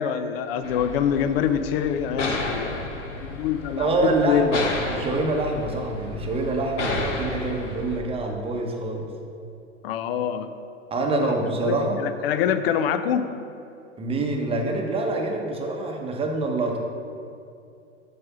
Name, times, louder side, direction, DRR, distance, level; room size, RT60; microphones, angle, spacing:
voice 1, 0.0-2.8 3.2-4.6 9.8-10.5 11.1-13.3, left 8 dB, 55° left, 11 dB, 0.5 m, -25 dB
sound 1, 0.6-8.0, left 2 dB, 85° left, 1.0 m, -32 dB
voice 2, 3.8-9.1 10.9-12.0 14.0-16.8, right 2 dB, 15° right, 2 dB, 0.8 m, -26 dB
7.6 x 3.5 x 5.8 m, 2.6 s
hypercardioid pair, 100°, 36 cm